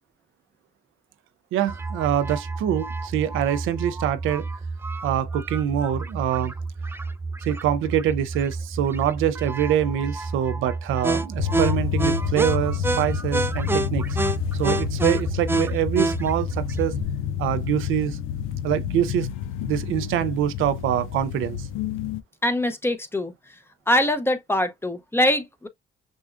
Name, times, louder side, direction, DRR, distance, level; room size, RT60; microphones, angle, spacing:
voice 1, 1.5-4.4 5.0-6.5 7.5-14.2 14.6-17.0 17.4-18.2 18.6-19.3 19.7-21.6, right 10 dB, 85° right, 0.5 m, -25 dB
sound 1, 1.7-17.0, right 3 dB, 10° right, 0.4 m, -29 dB
sound 2, 11.4-22.2, left 9 dB, 85° left, 0.4 m, -29 dB
voice 2, 22.4-23.3 23.9-25.7, left 1 dB, 10° left, 0.7 m, -23 dB
6.2 x 2.3 x 2.5 m
cardioid pair, 90°, 20 cm